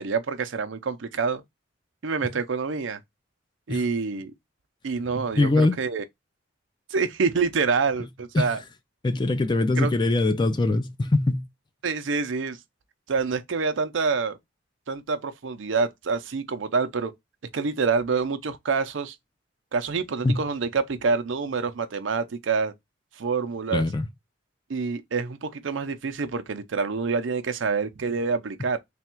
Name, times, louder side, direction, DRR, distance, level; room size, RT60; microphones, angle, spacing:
voice 1, 0.0-1.4 2.0-3.0 3.7-4.3 4.8-6.0 6.9-8.6 9.8-9.9 11.8-12.6 13.1-14.4 14.9-17.1 17.5-19.2 19.7-22.7 23.2-23.9 24.7-28.8, right 4 dB, 80° right, 0.6 m, -27 dB
voice 2, 5.4-5.7 8.3-8.5 9.0-11.5 20.2-20.4 23.7-24.1, left 2 dB, 25° left, 0.4 m, -22 dB
3.4 x 2.3 x 4.3 m
head